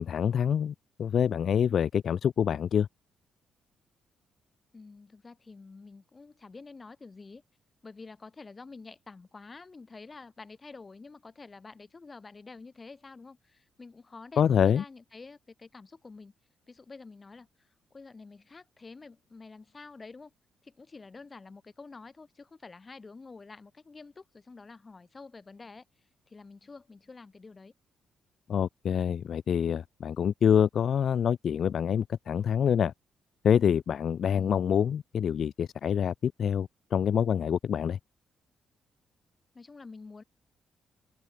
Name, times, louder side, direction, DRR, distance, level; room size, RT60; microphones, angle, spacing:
voice 1, 0.0-2.9 14.4-14.8 28.5-32.9 33.4-38.0, left 8 dB, 60° left, 0.5 m, -26 dB
voice 2, 4.7-7.4 7.8-16.3 16.7-17.5 17.9-20.3 20.6-25.8 26.3-27.7 34.3-34.6 39.5-40.2, left 4 dB, 30° left, 5.5 m, -48 dB
open air
cardioid pair, 75°, 0 cm